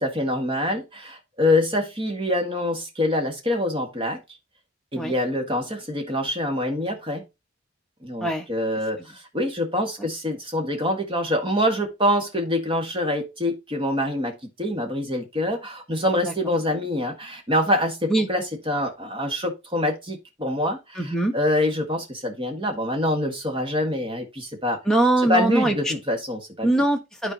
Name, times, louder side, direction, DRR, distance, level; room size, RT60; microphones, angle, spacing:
voice 1, 0.0-4.2 4.9-7.2 8.0-24.8 25.3-26.7, left 1 dB, 25° right, 1.6 m, -25 dB
voice 2, 16.2-16.5 18.1-18.3 20.9-21.3 24.8-25.9 26.6-27.3, right 1 dB, ahead, 1.2 m, -22 dB
12.0 x 4.5 x 2.9 m
head